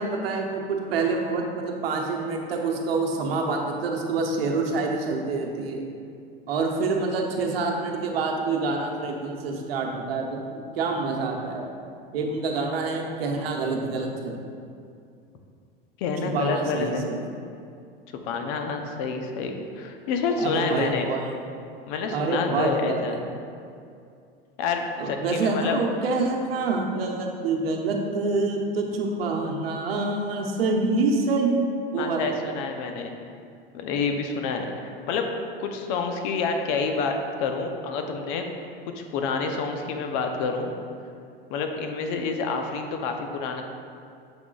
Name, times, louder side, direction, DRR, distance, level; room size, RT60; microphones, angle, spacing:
voice 1, 0.0-5.8 6.5-11.7 12.1-14.4 16.3-17.2 20.4-21.2 22.1-23.2 25.0-32.3, right 3 dB, 80° right, 1 dB, 0.9 m, -26 dB
voice 2, 16.0-17.1 18.1-21.1 21.9-23.2 24.6-25.8 32.0-33.1 33.7-35.3 35.6-38.5 38.9-40.7 41.5-43.6, left 4 dB, 55° left, 4 dB, 0.7 m, -28 dB
6.9 x 5.9 x 2.4 m, 2.4 s
hypercardioid pair, 90°, 30 cm